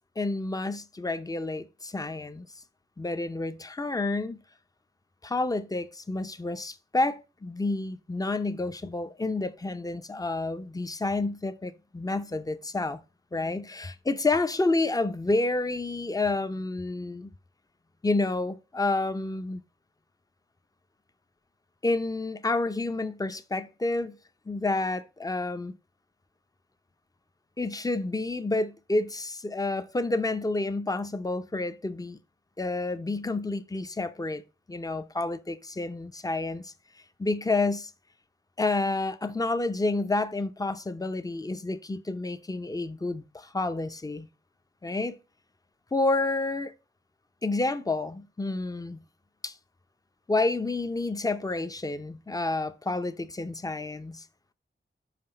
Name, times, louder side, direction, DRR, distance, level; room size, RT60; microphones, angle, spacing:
voice 1, 0.2-2.5 3.0-4.4 5.2-13.0 13.3-17.3 18.0-19.6 21.8-24.2 24.5-25.7 27.6-32.2 32.6-34.4 34.7-36.7 37.2-37.9 38.6-44.3 44.8-45.2 45.9-46.7 47.4-49.0 49.4-49.5 50.3-54.2, left 2 dB, 15° left, 0.6 m, -29 dB
5.9 x 4.9 x 4.3 m
wide cardioid pair, 55°, 21 cm